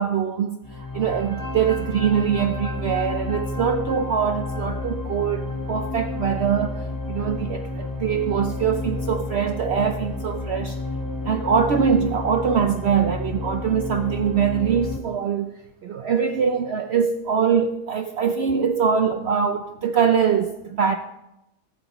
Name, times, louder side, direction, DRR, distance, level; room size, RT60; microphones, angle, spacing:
voice 1, 0.0-10.8 11.2-21.0, right 7 dB, 85° right, 0.5 m, -23 dB
sound 1, 0.6-15.0, left 2 dB, 15° left, 0.9 m, -30 dB
14.5 x 14.0 x 3.0 m
omnidirectional pair, 1.8 m